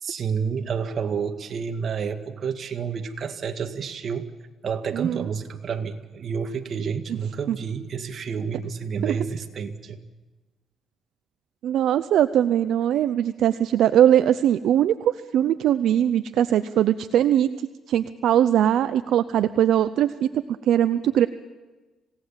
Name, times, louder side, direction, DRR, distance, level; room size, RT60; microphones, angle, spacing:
voice 1, 0.0-4.3 4.6-10.0, right 6 dB, 55° right, 6 dB, 2.0 m, -29 dB
voice 2, 4.9-5.3 7.5-7.6 9.0-9.2 11.6-17.5 17.9-21.3, right 10 dB, 75° right, 12 dB, 0.6 m, -21 dB
26.5 x 17.5 x 7.4 m, 1.2 s
cardioid pair, 90°, 0 cm